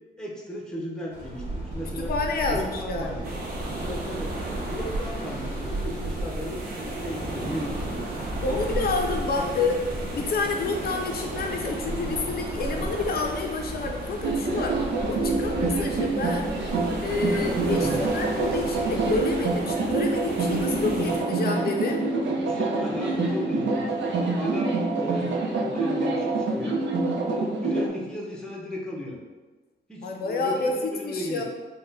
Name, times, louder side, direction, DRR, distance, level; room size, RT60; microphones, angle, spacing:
voice 1, 0.2-2.2 2.4-3.3 3.8-4.4 4.7-8.1 8.5-9.7 17.7-18.1 22.4-26.8 27.3-29.2 29.9-31.4, left 1 dB, 5° left, -2 dB, 0.5 m, -35 dB
sound 1, 1.1-19.6, right 1 dB, 30° right, 1.2 m, -35 dB
voice 2, 2.0-3.3 8.4-9.8 10.1-16.5 17.0-22.0 30.0-30.7 31.0-31.4, left 3 dB, 60° left, 2 dB, 0.4 m, -29 dB
sound 2, 3.2-21.2, right 2 dB, 55° right, 0.8 m, -37 dB
sound 3, 14.2-27.9, right 3 dB, 90° right, 0.6 m, -26 dB
4.0 x 2.1 x 3.9 m, 1.3 s
wide cardioid pair, 150°, 18 cm